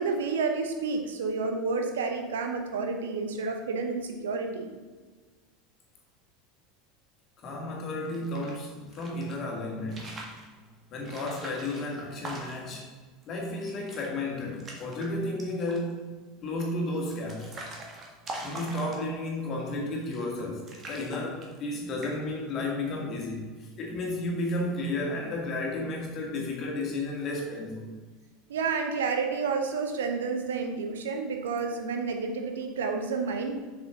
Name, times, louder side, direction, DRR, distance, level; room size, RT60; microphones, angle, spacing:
voice 1, 0.0-4.7 28.5-33.5, right 4 dB, 65° right, 4 dB, 0.8 m, -30 dB
voice 2, 7.4-10.1 10.9-12.9 13.3-16.1 16.4-17.6 18.4-27.9, left 2 dB, 35° left, -1 dB, 2.0 m, -33 dB
sound 1, 8.0-9.4 9.8-10.5 11.0-12.8 13.2-13.3 13.6-14.1 14.4-15.1 15.4-15.9 16.6-19.3 20.0-20.4 20.7-21.7 22.0-22.4, right 2 dB, 30° right, 1.7 m, -42 dB
7.1 x 6.3 x 3.7 m, 1.4 s
figure-of-eight pair, 75°, 0 cm